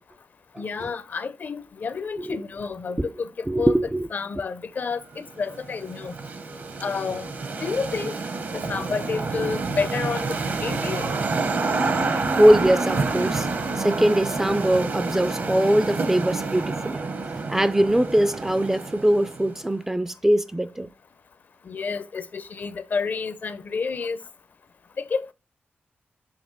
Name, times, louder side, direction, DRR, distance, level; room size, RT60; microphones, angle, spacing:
voice 1, 0.6-3.7 4.1-6.2 6.8-8.2 8.5-11.1 21.6-24.2 25.0-25.3, left 5 dB, 50° left, 0.5 m, -30 dB
voice 2, 3.5-4.1 12.3-13.5 13.8-17.0 17.5-20.9, right 1 dB, 10° right, 0.3 m, -21 dB
sound 1, 5.1-19.7, right 3 dB, 50° right, 0.8 m, -28 dB
6.5 x 3.0 x 5.7 m
wide cardioid pair, 135°, 4 cm